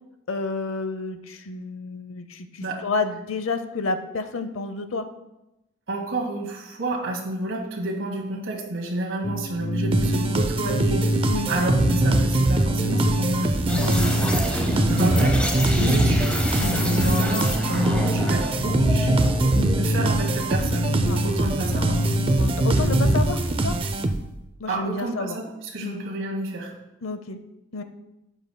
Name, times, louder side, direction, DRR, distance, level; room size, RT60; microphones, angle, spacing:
voice 1, 0.3-5.0 11.3-11.5 15.8-15.9 16.6-16.8 19.5-19.7 21.1-21.2 22.2-23.4 23.6-23.7 24.6-25.4 25.8-26.0 27.0-27.4 27.7-27.8, left 3 dB, 80° left, 9 dB, 0.7 m, -30 dB
voice 2, 5.9-11.1 11.5-16.3 16.8-19.2 19.8-22.1 24.7-26.7, right 1 dB, 70° right, -2 dB, 1.9 m, -30 dB
sound 1, 9.2-23.8, equal, 50° left, 0.8 m, -26 dB
sound 2, 9.9-24.5, right 2 dB, 25° right, 0.4 m, -24 dB
sound 3, 13.7-19.8, equal, 5° left, 0.7 m, -28 dB
12.0 x 8.1 x 2.2 m, 0.95 s
head